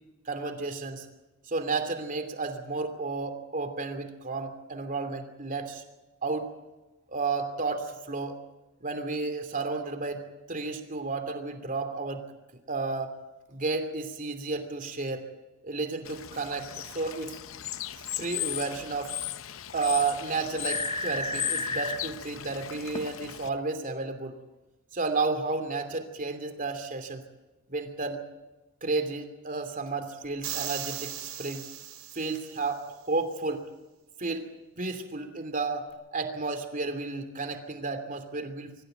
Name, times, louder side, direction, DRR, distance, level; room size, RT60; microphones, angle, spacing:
voice 1, 0.3-1.0 1.5-5.8 6.2-6.5 7.1-8.4 8.8-10.2 10.5-12.3 12.7-13.1 13.5-15.2 15.6-17.3 18.1-19.1 19.7-24.4 24.9-27.2 27.7-28.2 28.8-31.7 32.1-33.6 34.2-34.5 34.8-38.7, right 3 dB, 40° right, 8 dB, 2.8 m, -32 dB
Bird / Water, 16.0-23.5, left 13 dB, 65° left, 0.7 m, -37 dB
sound 1, 20.7-22.0 22.9-23.0, left 1 dB, 25° left, 1.7 m, -32 dB
sound 2, 30.4-32.7, right 10 dB, 75° right, 4.4 m, -37 dB
25.0 x 15.0 x 9.1 m, 1.1 s
head